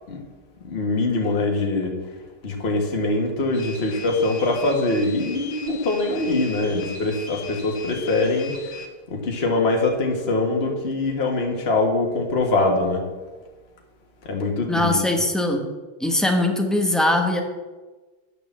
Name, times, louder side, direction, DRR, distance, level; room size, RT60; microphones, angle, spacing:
voice 1, 0.6-2.0 2.4-8.8 9.1-13.1 14.2-15.0, left 2 dB, 30° left, 1 dB, 1.7 m, -23 dB
sound 1, 3.5-8.9, left 4 dB, 65° left, 1.9 m, -39 dB
voice 2, 14.7-15.6 16.0-17.4, left 1 dB, ahead, 2 dB, 0.7 m, -21 dB
10.5 x 6.7 x 7.2 m, 1.3 s
omnidirectional pair, 2.3 m